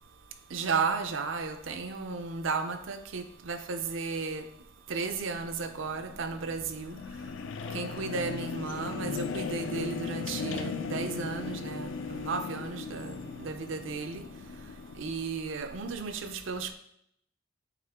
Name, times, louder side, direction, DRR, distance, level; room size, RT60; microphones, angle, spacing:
voice 1, 0.5-4.5 4.9-7.0 7.7-14.3 15.0-16.7, right 4 dB, 65° right, 0.5 m, -34 dB
sound 1, 5.4-15.1, left 5 dB, 65° left, 0.4 m, -38 dB
8.4 x 3.6 x 3.5 m
head